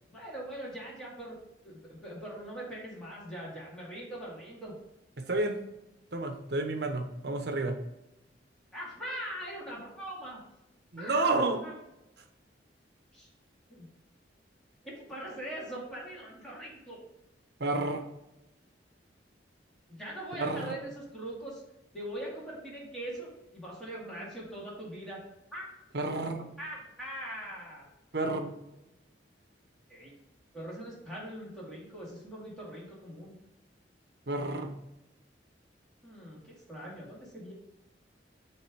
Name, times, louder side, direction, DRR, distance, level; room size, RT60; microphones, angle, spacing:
voice 1, 0.1-1.4 1.6-4.7 8.7-10.4 11.0-11.3 11.6-11.7 13.1-13.3 13.7-13.9 14.8-17.0 19.9-21.6 21.9-25.2 25.5-25.7 26.6-27.8 29.9-30.1 30.5-33.3 36.0-37.5, right 1 dB, 5° left, -6 dB, 2.3 m, -41 dB
voice 2, 5.2-5.6 6.1-7.8 10.9-11.6 17.6-18.0 20.3-20.7 25.9-26.5 28.1-28.6 34.3-34.7, right 2 dB, 60° right, 5 dB, 0.9 m, -30 dB
7.8 x 3.4 x 4.7 m, 0.89 s
head